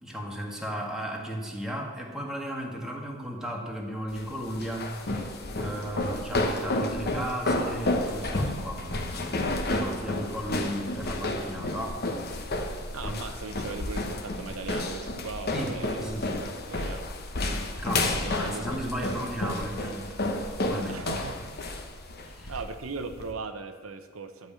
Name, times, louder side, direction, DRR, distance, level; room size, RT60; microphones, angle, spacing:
voice 1, 0.0-4.9 5.5-12.1 13.0-13.2 15.5-16.4 17.4-21.0 22.3-22.6, equal, 5° right, -1 dB, 1.7 m, -35 dB
sound 1, 4.1-23.3, left 1 dB, 50° left, 1.1 m, -31 dB
voice 2, 12.9-16.1 16.7-17.1 18.1-18.7 19.0-19.2 20.9-21.8 22.5-24.5, right 4 dB, 90° right, 7 dB, 0.8 m, -39 dB
11.0 x 5.4 x 8.7 m, 1.5 s
head